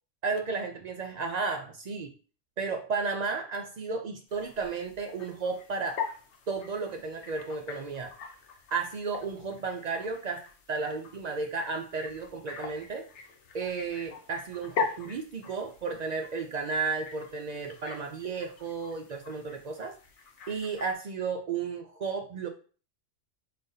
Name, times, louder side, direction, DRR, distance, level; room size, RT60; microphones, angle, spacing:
voice 1, 0.2-2.1 2.6-6.0 6.5-8.1 8.7-10.4 10.7-13.1 13.5-19.9 20.5-22.5, right 4 dB, 65° right, 4 dB, 0.4 m, -33 dB
sound 1, 4.3-20.9, left 6 dB, 70° left, 1.0 m, -42 dB
4.1 x 3.9 x 2.7 m, 0.38 s
omnidirectional pair, 1.3 m